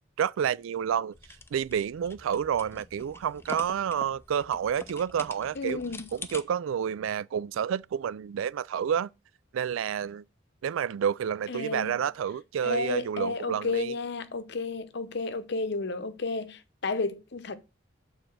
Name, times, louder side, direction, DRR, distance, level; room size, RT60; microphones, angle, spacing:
voice 1, 0.2-1.1 1.5-5.8 6.1-9.1 9.5-10.2 10.6-13.9, right 8 dB, 80° right, 0.3 m, -29 dB
sound 1, 1.1-6.4, left 3 dB, 10° left, 0.5 m, -45 dB
voice 2, 5.5-6.1 11.5-12.0 12.6-17.6, left 3 dB, 60° left, 0.8 m, -32 dB
6.8 x 3.9 x 6.0 m
head